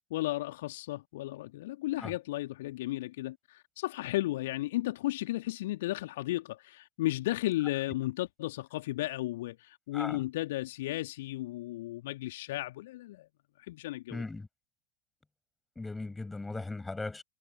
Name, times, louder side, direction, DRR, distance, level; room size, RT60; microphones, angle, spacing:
voice 1, 0.1-13.3 13.6-14.2, left 17 dB, 55° left, 1.9 m, -34 dB
voice 2, 14.1-14.5 15.8-17.2, left 3 dB, 10° left, 7.2 m, -38 dB
figure-of-eight pair, 90°, 0 cm